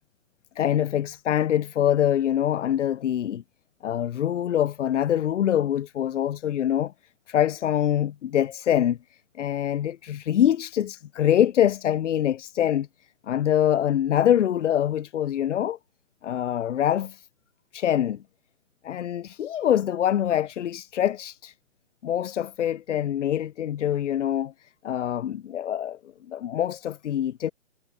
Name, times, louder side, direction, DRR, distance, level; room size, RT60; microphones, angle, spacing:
voice 1, 0.6-3.4 3.8-6.9 7.3-9.0 9.4-12.9 13.3-15.8 16.2-17.3 17.7-18.2 18.8-21.5 22.0-24.5 24.8-26.0 26.3-27.5, left 10 dB, 75° left, 0.6 m, -24 dB
hypercardioid pair, 160°, 36 cm